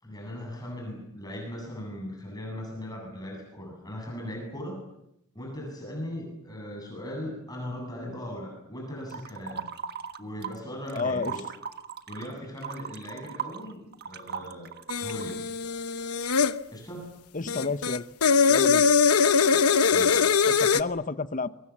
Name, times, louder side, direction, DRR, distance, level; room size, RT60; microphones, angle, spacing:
voice 1, 0.0-4.8 5.3-9.7 10.2-11.4 12.1-14.7 15.0-15.5 16.7-17.1 19.9-20.5, equal, 20° left, 7.8 m, -38 dB
sound 1, 9.1-10.6 10.9-15.3, right 7 dB, 45° right, 1.4 m, -38 dB
voice 2, 10.9-11.3 17.3-18.0 18.5-18.8 20.5-21.5, left 4 dB, 35° left, 0.9 m, -30 dB
sound 2, 14.9-16.5 17.5-20.8, left 5 dB, 85° left, 1.0 m, -22 dB
28.5 x 23.5 x 7.4 m
head